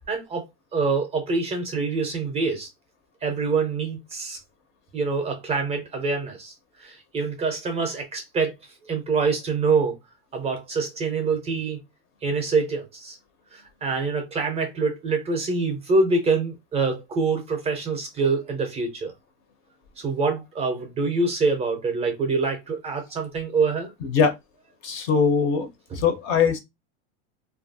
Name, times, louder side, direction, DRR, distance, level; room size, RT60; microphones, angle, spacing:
voice 1, 0.1-2.7 3.2-4.4 4.9-8.5 8.8-10.0 10.3-11.8 12.2-13.2 13.5-19.1 20.0-23.9, right 4 dB, 20° right, 0.5 m, -25 dB
voice 2, 24.0-24.4 24.8-25.7 25.9-26.6, left 6 dB, 40° left, 0.5 m, -21 dB
2.7 x 2.3 x 2.6 m
supercardioid pair, 155°, 34 cm